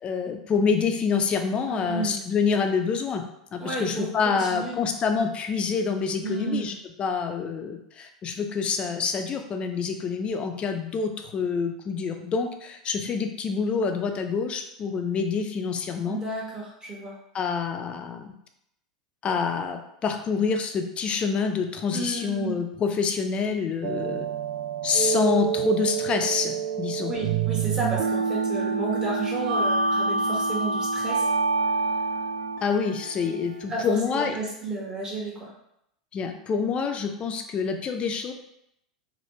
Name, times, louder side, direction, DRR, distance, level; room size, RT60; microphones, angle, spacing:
voice 1, 0.0-3.2 3.5-6.7 7.0-16.2 17.3-18.3 19.2-24.3 24.8-27.1 32.6-34.3 36.1-38.3, left 5 dB, 30° left, 5 dB, 0.4 m, -27 dB
voice 2, 1.7-2.2 3.6-4.8 6.2-6.7 16.1-17.2 21.9-22.6 27.0-31.3 33.7-35.5, right 2 dB, 20° right, -4 dB, 1.1 m, -32 dB
sound 1, 23.8-33.9, right 4 dB, 60° right, 0.4 m, -27 dB
3.1 x 2.2 x 3.1 m, 0.78 s
hypercardioid pair, 100°, 4 cm